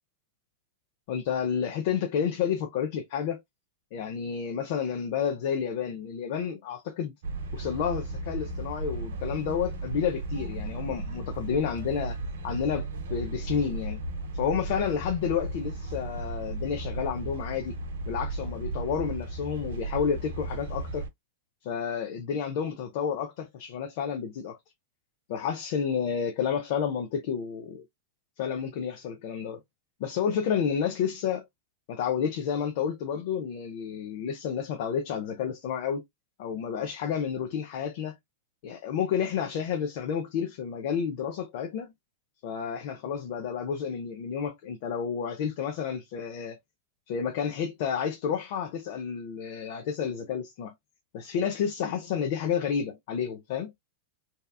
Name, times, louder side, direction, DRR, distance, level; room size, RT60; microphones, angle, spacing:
voice 1, 1.1-3.4 3.9-7.1 7.5-12.2 12.4-14.0 14.3-17.7 18.1-21.1 21.6-24.6 25.3-27.8 28.4-29.6 30.0-31.4 31.9-36.0 36.4-38.2 38.6-41.9 42.4-46.6 47.1-50.7 51.1-53.7, left 7 dB, 60° left, 0.5 m, -30 dB
sound 1, 7.2-21.1, right 2 dB, 80° right, 0.7 m, -35 dB
2.8 x 2.3 x 2.2 m
hypercardioid pair, 125°, 0 cm